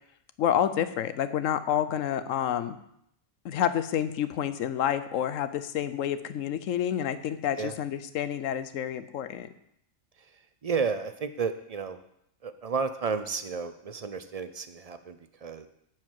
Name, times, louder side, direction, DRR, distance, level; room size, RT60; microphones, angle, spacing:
voice 1, 0.4-2.8 3.4-9.5, left 10 dB, 80° left, 12 dB, 1.0 m, -29 dB
voice 2, 10.6-12.0 12.4-15.7, right 5 dB, 45° right, 10 dB, 0.5 m, -32 dB
11.0 x 4.7 x 7.6 m, 0.75 s
omnidirectional pair, 1.3 m